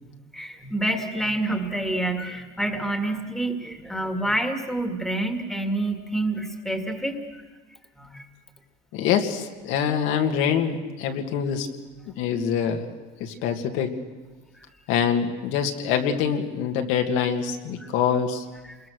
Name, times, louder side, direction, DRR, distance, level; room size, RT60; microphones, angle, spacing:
voice 1, 0.3-7.4 8.0-8.2 14.5-14.7 17.8-17.9 18.6-18.8, right 1 dB, ahead, 4 dB, 1.9 m, -28 dB
voice 2, 8.9-11.7 12.2-12.9 13.2-13.9 14.9-18.4, left 7 dB, 80° left, 4 dB, 2.2 m, -25 dB
28.0 x 21.5 x 6.4 m, 1.3 s
cardioid pair, 155°, 20 cm